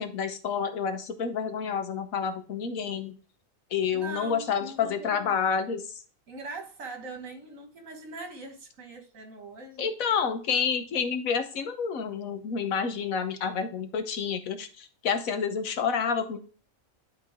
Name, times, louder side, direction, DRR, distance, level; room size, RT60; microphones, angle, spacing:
voice 1, 0.0-3.2 3.7-5.8 9.8-16.4, left 6 dB, 85° left, 1.4 m, -29 dB
voice 2, 3.9-5.4 6.3-9.9, right 3 dB, 75° right, 1.8 m, -42 dB
11.0 x 3.8 x 3.6 m
omnidirectional pair, 1.4 m